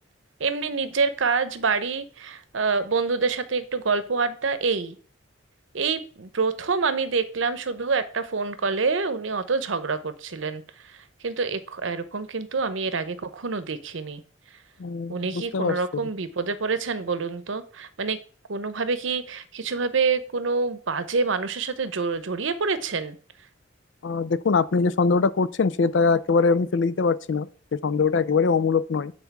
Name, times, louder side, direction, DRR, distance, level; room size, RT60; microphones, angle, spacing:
voice 1, 0.4-5.0 5.7-11.0 11.2-14.2 15.1-18.2 18.5-23.2, right 4 dB, 80° right, 0.8 m, -27 dB
voice 2, 14.8-16.0 24.0-29.1, left 4 dB, 70° left, 0.4 m, -23 dB
8.1 x 4.1 x 5.9 m
head